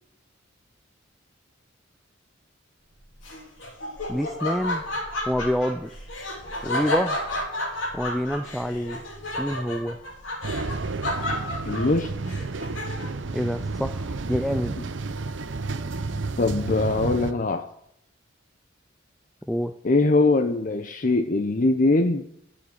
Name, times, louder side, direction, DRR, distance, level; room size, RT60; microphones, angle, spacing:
Laughter, 3.2-13.2, left 1 dB, 70° left, 3.1 m, -31 dB
voice 1, 4.1-4.8 5.3-6.0 6.6-7.2 7.9-9.0 9.4-10.0 13.3-14.8 19.5-19.8, equal, ahead, 0.4 m, -27 dB
sound 1, 10.4-17.3, right 3 dB, 65° right, 0.7 m, -31 dB
voice 2, 11.7-12.1 16.4-17.7 19.8-22.3, left 2 dB, 40° left, 0.7 m, -22 dB
11.5 x 7.1 x 8.8 m
head